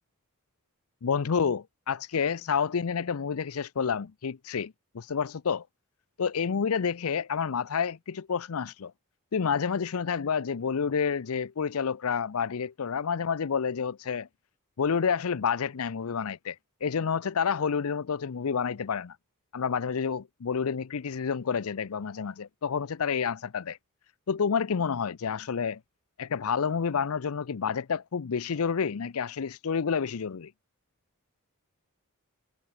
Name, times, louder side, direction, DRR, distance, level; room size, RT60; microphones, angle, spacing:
voice 1, 1.0-5.6 6.2-8.9 9.3-14.3 14.8-19.2 19.5-23.8 24.3-25.8 26.2-30.5, left 6 dB, 70° left, 0.5 m, -29 dB
head